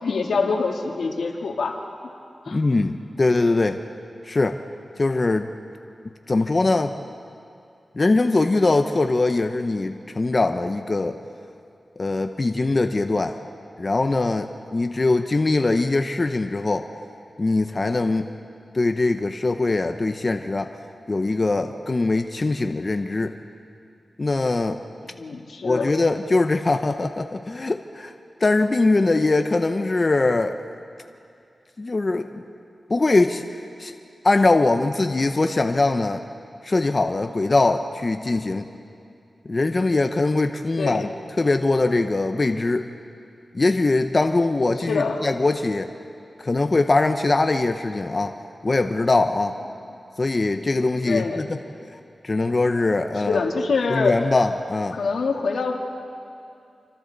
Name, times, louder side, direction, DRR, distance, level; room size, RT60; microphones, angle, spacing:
voice 1, 0.0-1.8 2.5-2.6 25.0-25.9 40.8-41.1 44.9-45.2 49.7-49.8 51.1-51.4 53.2-54.2 54.9-55.8, left 4 dB, 90° left, 2 dB, 1.9 m, -25 dB
voice 2, 2.5-3.8 4.2-4.6 5.0-5.5 6.3-6.9 7.9-11.2 12.0-13.4 13.8-16.9 17.4-18.3 18.7-20.7 21.1-23.4 24.2-24.8 25.6-28.1 28.4-30.6 31.8-32.4 32.9-33.4 33.8-33.9 34.2-36.2 36.6-38.7 39.4-41.1 41.4-42.9 43.5-45.9 46.4-48.3 48.6-49.6 50.2-51.6 52.2-53.4 53.9-55.0, left 2 dB, 40° left, 6 dB, 0.8 m, -22 dB
27.0 x 25.0 x 4.0 m, 2.5 s
cardioid pair, 65°, 0 cm